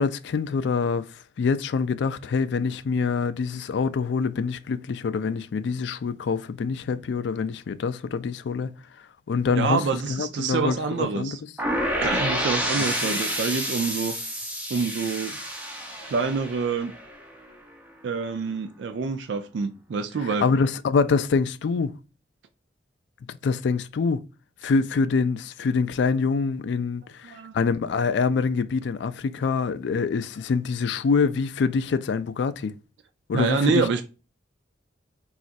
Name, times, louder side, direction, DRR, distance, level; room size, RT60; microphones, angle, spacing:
voice 1, 0.0-8.7 9.0-11.4 12.8-13.2 20.4-21.9 23.3-24.2 24.6-32.7 33.3-33.9, left 5 dB, 65° left, 0.3 m, -25 dB
voice 2, 9.6-11.4 12.0-14.1 14.7-15.4 16.0-16.9 18.0-20.5 27.2-27.5 33.3-34.0, right 5 dB, 70° right, 0.4 m, -27 dB
sound 1, 11.6-17.5, equal, 10° right, 0.6 m, -29 dB
4.1 x 2.4 x 2.5 m
head